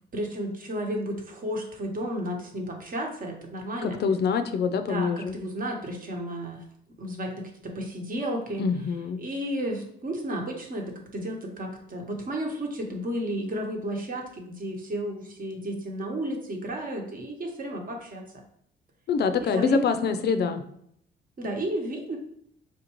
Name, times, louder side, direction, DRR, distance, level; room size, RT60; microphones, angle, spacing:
voice 1, 0.1-4.0 4.9-6.6 7.0-8.6 9.2-18.2 19.4-20.5 21.4-22.2, right 1 dB, 45° right, 1 dB, 1.1 m, -33 dB
voice 2, 3.8-5.4 8.6-9.2 19.1-20.6, left 5 dB, 55° left, 9 dB, 0.4 m, -25 dB
4.6 x 2.5 x 3.0 m, 0.69 s
cardioid pair, 90°, 20 cm